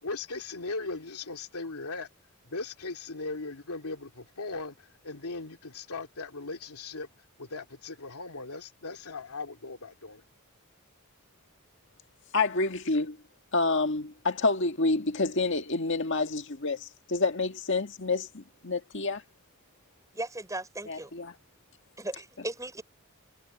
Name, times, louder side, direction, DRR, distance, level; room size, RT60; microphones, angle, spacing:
voice 1, 0.0-2.1 2.5-7.1 7.4-10.2, left 3 dB, 90° left, 2.9 m, -38 dB
voice 2, 12.3-13.2 13.5-19.2 20.9-21.3, left 3 dB, 55° left, 1.9 m, -28 dB
voice 3, 20.1-21.1 22.0-22.8, right 2 dB, 15° right, 5.7 m, -36 dB
head